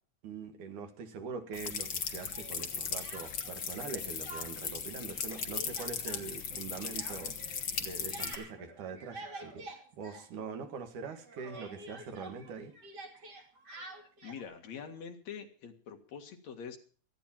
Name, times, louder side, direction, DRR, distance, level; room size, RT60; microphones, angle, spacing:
voice 1, 0.2-9.7 10.0-12.7, right 5 dB, 90° right, 6 dB, 3.4 m, -43 dB
sound 1, 1.5-8.4, left 6 dB, 45° left, 2.1 m, -38 dB
Speech, 2.3-3.6 3.9-4.8 5.1-10.8 11.0-14.4, right 2 dB, 35° right, 2.9 m, -49 dB
voice 2, 13.8-16.8, left 7 dB, 65° left, 4 dB, 3.1 m, -45 dB
18.5 x 14.0 x 4.4 m, 0.43 s
omnidirectional pair, 3.4 m